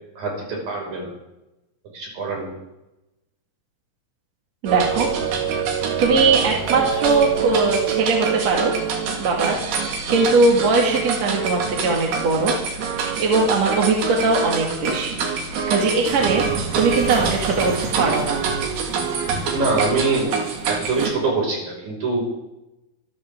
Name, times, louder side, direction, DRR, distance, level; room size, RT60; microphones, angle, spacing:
voice 1, 0.2-1.1 1.9-2.5 19.2-20.3 20.7-22.3, right 3 dB, 65° right, -2 dB, 7.7 m, -24 dB
voice 2, 4.6-5.1 6.0-8.7 9.2-9.6 9.8-12.5 12.9-15.2 15.5-16.4 16.7-18.4, right 3 dB, 50° right, 0 dB, 3.0 m, -20 dB
sound 1, 4.7-21.1, right 6 dB, 90° right, 4.1 m, -25 dB
25.5 x 14.0 x 3.8 m, 0.95 s
omnidirectional pair, 4.3 m